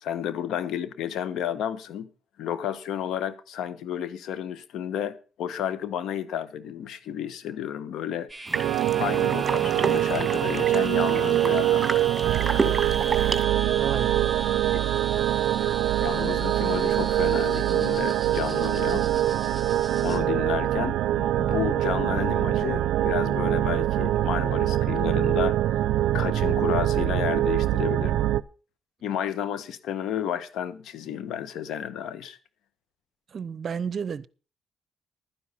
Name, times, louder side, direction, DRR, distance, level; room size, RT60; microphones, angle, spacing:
voice 1, 0.0-2.1 2.4-8.3 9.0-11.9 15.6-15.7 16.0-19.1 20.0-25.8 26.1-28.2 29.0-32.4, left 9 dB, 80° left, 1.3 m, -31 dB
sound 1, 8.3-20.2, right 2 dB, 10° right, 4.4 m, -38 dB
sound 2, 8.5-13.4, right 4 dB, 30° right, 2.0 m, -31 dB
sound 3, 8.5-28.4, right 13 dB, 85° right, 0.5 m, -24 dB
voice 2, 13.8-14.4 33.3-34.3, right 6 dB, 50° right, 0.8 m, -32 dB
12.0 x 10.0 x 5.7 m
cardioid pair, 90°, 0 cm